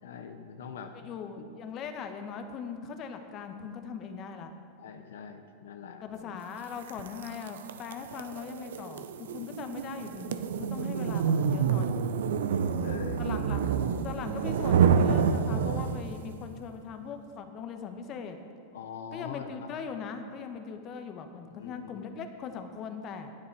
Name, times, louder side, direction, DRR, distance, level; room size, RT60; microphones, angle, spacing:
voice 1, 0.0-1.1 1.4-1.5 4.8-6.3 12.5-13.3 18.7-19.7 21.5-22.0, left 6 dB, 80° left, 6 dB, 0.7 m, -43 dB
voice 2, 1.0-4.5 6.0-12.0 13.2-13.7 14.0-18.4 19.1-23.3, left 6 dB, 40° left, 6 dB, 0.9 m, -40 dB
sound 1, 6.9-16.2, right 7 dB, 80° right, 0.5 m, -28 dB
9.3 x 9.2 x 4.6 m, 2.4 s
hypercardioid pair, 120°, 0 cm